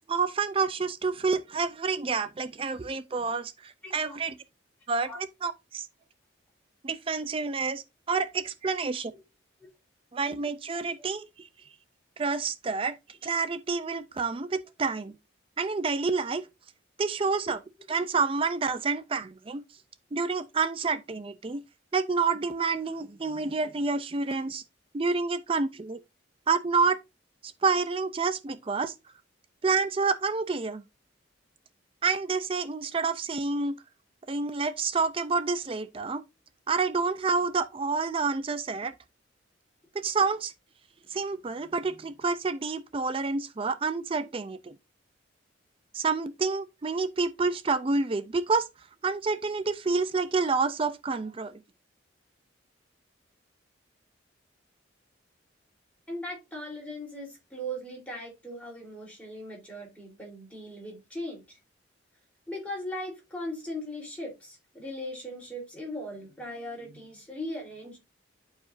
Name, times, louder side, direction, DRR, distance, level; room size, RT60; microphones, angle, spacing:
voice 1, 0.1-4.4 4.9-5.9 6.8-9.1 10.1-11.5 12.2-13.0 13.2-15.1 15.6-16.5 17.0-17.6 17.9-19.6 20.1-21.6 21.9-24.6 24.9-26.0 26.5-27.0 27.4-28.9 29.6-30.8 32.0-33.7 34.3-36.2 36.7-38.9 39.9-40.5 41.1-44.7 45.9-48.7 49.0-51.6, right 4 dB, 30° right, 0.4 m, -28 dB
voice 2, 3.8-4.2 5.1-5.2 56.1-61.6 62.5-68.0, equal, 5° left, 3.4 m, -39 dB
11.5 x 4.8 x 2.5 m
head